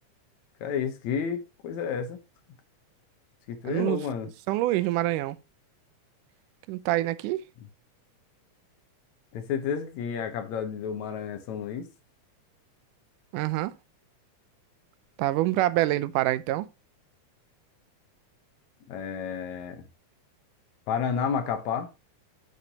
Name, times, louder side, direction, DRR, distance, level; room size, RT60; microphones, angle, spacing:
voice 1, 0.6-2.2 3.5-4.3 9.3-11.9 18.9-19.8 20.9-21.9, left 7 dB, 70° left, 2.2 m, -31 dB
voice 2, 3.7-4.0 4.5-5.4 6.7-7.4 13.3-13.7 15.2-16.7, right 16 dB, 90° right, 2.2 m, -26 dB
8.8 x 6.5 x 2.8 m
omnidirectional pair, 3.6 m